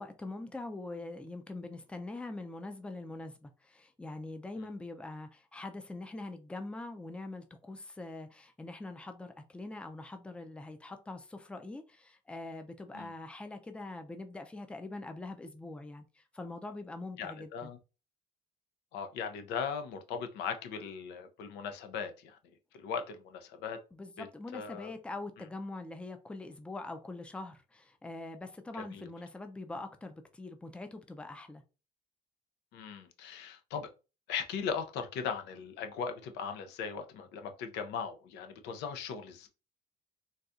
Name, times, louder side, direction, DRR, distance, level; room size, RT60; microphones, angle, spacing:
voice 1, 0.0-17.7 23.9-31.6, left 2 dB, 5° left, 0.4 m, -43 dB
voice 2, 17.2-17.8 18.9-22.4 22.7-23.8 24.2-24.3 24.5-24.9 28.7-29.1 32.7-33.9 34.3-39.5, left 6 dB, 90° left, 0.5 m, -38 dB
3.9 x 2.3 x 2.4 m
cardioid pair, 110°, 17 cm